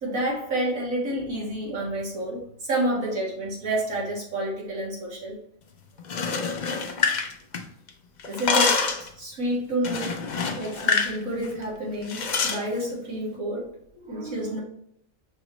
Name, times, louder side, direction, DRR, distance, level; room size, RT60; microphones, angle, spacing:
voice 1, 0.0-5.4 8.3-10.2 10.6-14.6, right 1 dB, 75° right, -5 dB, 2.1 m, -29 dB
sound 1, 6.0-7.9 8.2-9.1 9.8-11.2 11.4-11.6 12.1-12.6, left 5 dB, 70° left, 0.4 m, -26 dB
5.5 x 3.0 x 3.0 m, 0.70 s
omnidirectional pair, 1.4 m